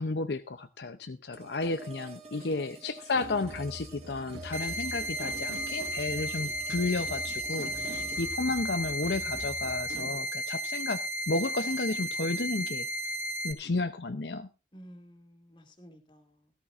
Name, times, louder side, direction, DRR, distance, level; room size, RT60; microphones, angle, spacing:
voice 1, 0.0-13.2 13.4-14.5, left 3 dB, 65° left, 0.7 m, -32 dB
sound 1, 1.3-10.4, right 3 dB, 35° right, 1.7 m, -49 dB
voice 2, 2.4-2.8 7.9-8.4 14.7-16.5, equal, 25° left, 2.4 m, -53 dB
sound 2, 3.1-10.2, equal, 75° right, 1.4 m, -45 dB
sound 3, 4.5-13.5, equal, 10° right, 1.3 m, -34 dB
16.5 x 14.0 x 2.5 m
head